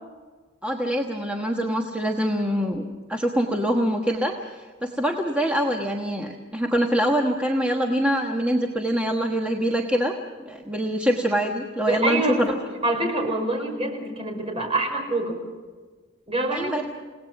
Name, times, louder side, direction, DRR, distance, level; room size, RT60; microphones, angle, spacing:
voice 1, 0.6-10.1 10.4-12.5 16.5-16.8, equal, 5° right, 1 dB, 1.3 m, -24 dB
voice 2, 11.8-15.4 16.3-16.8, right 1 dB, 30° right, 2 dB, 5.7 m, -26 dB
29.5 x 18.5 x 6.0 m, 1.4 s
head